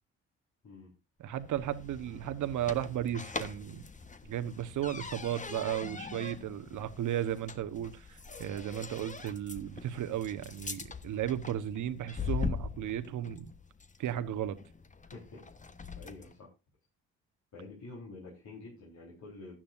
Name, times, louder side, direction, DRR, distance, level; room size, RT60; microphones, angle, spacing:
voice 1, 0.6-0.9 15.1-15.5 16.0-16.5 17.5-19.6, left 3 dB, 60° left, 4.4 m, -48 dB
voice 2, 1.2-3.8 4.3-13.5 14.0-14.6, right 11 dB, 65° right, 1.3 m, -35 dB
sound 1, 1.3-16.4, left 5 dB, 25° left, 1.2 m, -42 dB
15.0 x 10.5 x 2.6 m
supercardioid pair, 60°, 32 cm